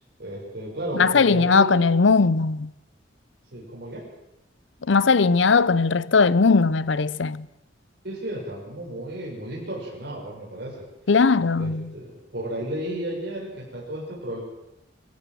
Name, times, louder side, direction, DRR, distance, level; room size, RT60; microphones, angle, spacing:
voice 1, 0.2-1.8 3.5-4.0 8.0-10.8 11.6-14.4, right 1 dB, 60° right, 6.7 m, -33 dB
voice 2, 1.0-2.7 4.9-7.4 11.1-11.8, left 4 dB, 80° left, 0.7 m, -19 dB
23.0 x 15.0 x 7.8 m
head